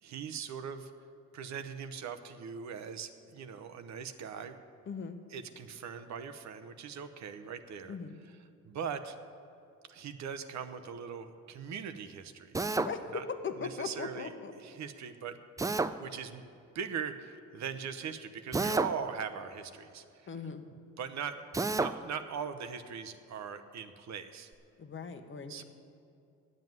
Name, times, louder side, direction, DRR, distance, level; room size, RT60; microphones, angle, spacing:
voice 1, 0.0-0.9 1.3-4.6 5.3-8.0 8.6-9.2 9.9-12.6 13.1-13.2 13.6-15.4 16.0-16.5 16.7-20.3 21.0-24.5 25.5-25.6, right 7 dB, 65° right, 10 dB, 0.8 m, -40 dB
voice 2, 4.9-5.2 7.9-8.2 12.8-13.0 13.4-14.5 15.9-16.0 20.3-20.6 24.8-25.6, left 5 dB, 40° left, 7 dB, 1.0 m, -39 dB
Drill, 12.5-12.9 15.6-15.9 18.5-19.0 21.5-21.9, right 3 dB, 10° right, 0.3 m, -29 dB
9.2 x 7.6 x 9.2 m, 2.5 s
cardioid pair, 90°, 30 cm